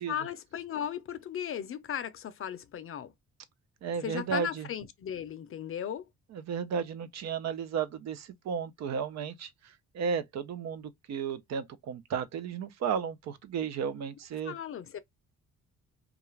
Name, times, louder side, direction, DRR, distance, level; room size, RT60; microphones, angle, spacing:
voice 1, 0.0-3.1 4.0-6.1 14.4-15.0, left 9 dB, 45° left, 0.5 m, -36 dB
voice 2, 3.8-4.7 6.3-9.5 9.9-14.5, right 6 dB, 60° right, 0.5 m, -33 dB
2.3 x 2.3 x 3.1 m
cardioid pair, 90°, 30 cm